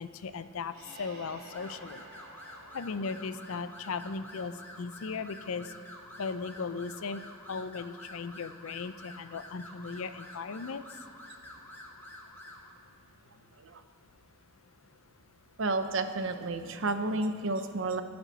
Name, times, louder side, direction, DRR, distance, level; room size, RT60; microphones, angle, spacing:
voice 1, 0.0-2.0 2.7-5.7 6.2-7.2 7.5-10.8, left 4 dB, 80° left, 12 dB, 0.5 m, -37 dB
sound 1, 0.7-4.3, right 1 dB, 45° right, 3.2 m, -51 dB
sound 2, 1.5-12.7, left 1 dB, 10° left, 1.3 m, -49 dB
voice 2, 15.6-18.0, right 2 dB, 65° right, 8 dB, 0.8 m, -31 dB
22.0 x 7.9 x 4.1 m, 2.2 s
head